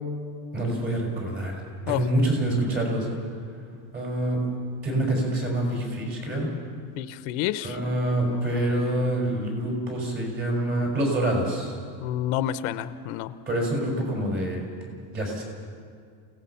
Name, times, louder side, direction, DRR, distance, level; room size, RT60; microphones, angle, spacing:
voice 1, 0.5-3.1 3.9-4.4 4.8-6.5 7.6-11.7 13.5-15.4, right 1 dB, 30° right, 0 dB, 5.8 m, -26 dB
voice 2, 7.0-7.8 8.3-8.9 12.0-13.3, left 12 dB, 75° left, 12 dB, 0.9 m, -30 dB
29.0 x 17.5 x 5.8 m, 2.3 s
cardioid pair, 170°, 41 cm